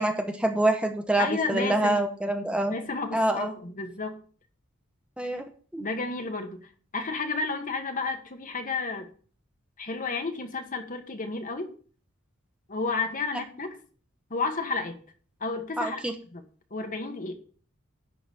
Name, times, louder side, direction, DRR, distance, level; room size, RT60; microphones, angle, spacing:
voice 1, 0.0-2.8 3.1-3.5 5.2-5.4 5.7-5.9 15.8-16.1, right 1 dB, 5° right, 5 dB, 0.9 m, -26 dB
voice 2, 1.2-2.0 2.7-4.2 5.8-6.7 6.9-9.1 9.8-11.7 12.7-13.8 14.3-15.0 15.4-16.0 16.3-16.4 16.7-17.3, left 3 dB, 40° left, 5 dB, 1.4 m, -31 dB
11.0 x 4.0 x 7.7 m, 0.43 s
head